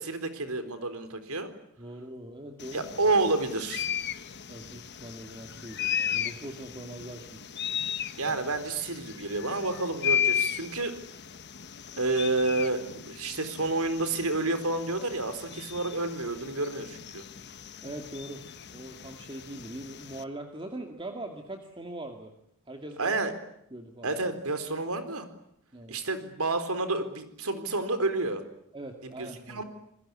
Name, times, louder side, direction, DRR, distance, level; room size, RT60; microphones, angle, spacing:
voice 1, 0.0-1.5 2.7-3.9 8.2-10.9 12.0-17.2 23.0-23.3 24.0-25.3 25.9-28.4 29.2-29.6, right 2 dB, 85° right, 9 dB, 4.1 m, -29 dB
voice 2, 1.8-2.8 4.5-7.4 17.8-18.4 18.7-22.3 22.7-23.1 23.7-24.2 25.7-26.0 28.7-29.6, right 1 dB, 25° right, 4 dB, 2.3 m, -41 dB
sound 1, 2.6-20.2, left 9 dB, 50° left, 1.3 m, -35 dB
28.0 x 21.5 x 9.9 m, 0.75 s
head